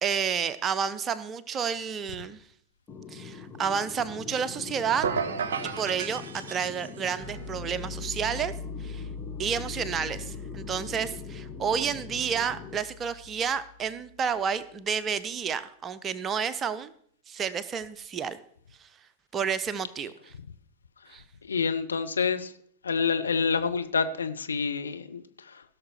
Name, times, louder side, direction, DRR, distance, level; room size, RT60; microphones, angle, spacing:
voice 1, 0.0-2.4 3.1-5.1 5.8-8.5 8.8-9.0 9.4-16.9 17.3-18.4 19.3-20.1 21.1-21.2, right 7 dB, 25° right, 14 dB, 0.7 m, -30 dB
sound 1, 2.9-12.8, left 5 dB, 20° left, 1.3 m, -43 dB
sound 2, 5.0-7.1, right 6 dB, 60° right, 0.7 m, -32 dB
sound 3, 7.2-14.0, left 4 dB, 5° right, 4.2 m, -41 dB
voice 2, 21.4-22.5 22.8-25.6, left 5 dB, 75° left, 8 dB, 0.7 m, -28 dB
16.5 x 6.5 x 4.5 m, 0.63 s
figure-of-eight pair, 90°, 0 cm